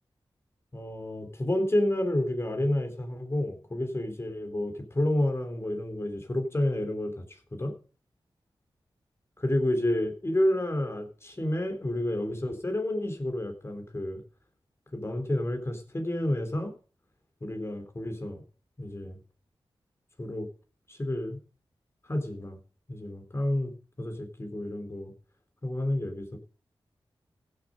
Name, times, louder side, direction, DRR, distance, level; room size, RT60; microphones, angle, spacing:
voice 1, 0.7-7.2 7.5-7.7 9.4-14.2 14.9-16.7 17.4-18.4 18.8-19.2 20.2-20.5 20.9-21.4 22.1-22.6 22.9-25.1 25.6-26.4, left 1 dB, 30° left, 6 dB, 3.7 m, -30 dB
15.5 x 7.9 x 5.2 m, 0.38 s
wide cardioid pair, 70°, 9 cm